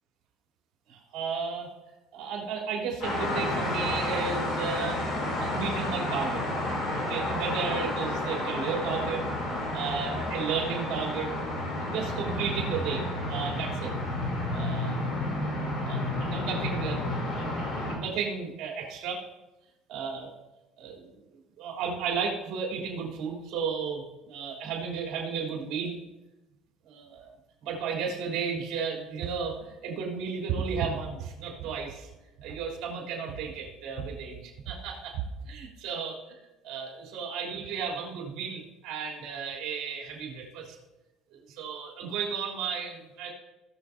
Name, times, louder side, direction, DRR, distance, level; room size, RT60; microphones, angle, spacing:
voice 1, 0.9-1.7 2.1-5.0 5.4-6.4 6.9-9.2 9.7-11.3 11.8-13.9 14.5-15.1 15.8-17.1 17.4-19.2 19.9-20.3 20.8-21.1 21.6-25.9 26.9-27.3 27.6-32.1 32.4-36.1 36.6-40.7 41.3-43.3, right 6 dB, 50° right, -3 dB, 3.5 m, -33 dB
sound 1, 3.0-17.9, left 1 dB, 50° left, 3.2 m, -31 dB
18.5 x 6.7 x 2.8 m, 1.0 s
cardioid pair, 165°, 0 cm